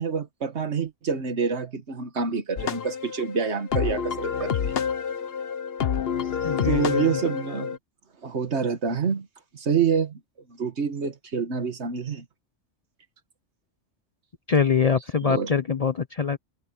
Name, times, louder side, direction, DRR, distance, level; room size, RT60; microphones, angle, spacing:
voice 1, 0.0-4.7 6.6-7.8 8.2-9.3 9.5-10.2 10.5-12.2 15.2-15.5, right 6 dB, 70° right, 1.8 m, -27 dB
sound 1, 2.6-7.8, left 7 dB, 60° left, 1.1 m, -28 dB
voice 2, 6.4-7.2 14.5-16.4, left 6 dB, 40° left, 0.6 m, -24 dB
open air
omnidirectional pair, 1.2 m